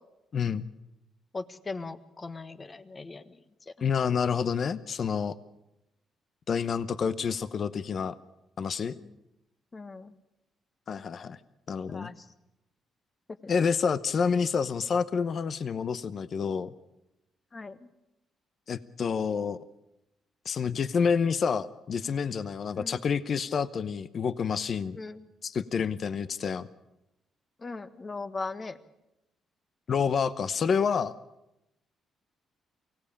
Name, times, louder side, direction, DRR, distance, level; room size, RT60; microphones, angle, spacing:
voice 1, 0.3-0.7 3.8-5.3 6.5-8.1 8.6-9.0 10.9-11.4 11.7-12.1 13.5-16.7 18.7-19.6 20.4-25.0 25.4-26.7 29.9-31.1, left 6 dB, 50° left, 15 dB, 0.8 m, -28 dB
voice 2, 1.3-3.4 3.7-3.8 8.9-9.1 9.7-10.1 11.9-12.2 13.4-13.5 17.5-17.9 22.7-23.0 24.9-25.3 27.6-28.8, left 3 dB, 30° left, 11 dB, 1.4 m, -39 dB
24.0 x 17.0 x 8.7 m, 0.90 s
cardioid pair, 90°, 0 cm